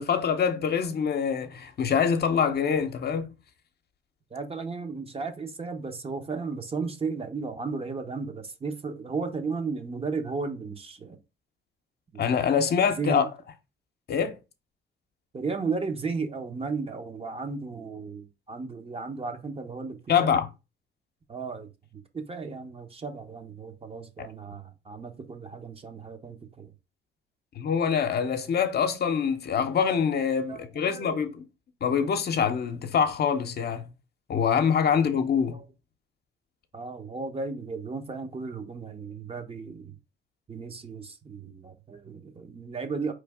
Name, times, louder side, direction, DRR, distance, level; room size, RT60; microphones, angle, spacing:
voice 1, 0.0-3.3 12.2-13.3 14.1-14.4 20.1-20.4 24.2-24.3 27.6-31.4 31.8-33.9 34.3-35.6, left 7 dB, 55° left, 0.8 m, -25 dB
voice 2, 4.3-11.2 12.1-12.2 13.0-13.3 15.3-20.3 21.3-26.7 30.5-31.2 35.5-35.7 36.7-40.0 40.5-43.1, right 4 dB, 30° right, 0.8 m, -34 dB
4.5 x 3.3 x 3.5 m
cardioid pair, 90°, 20 cm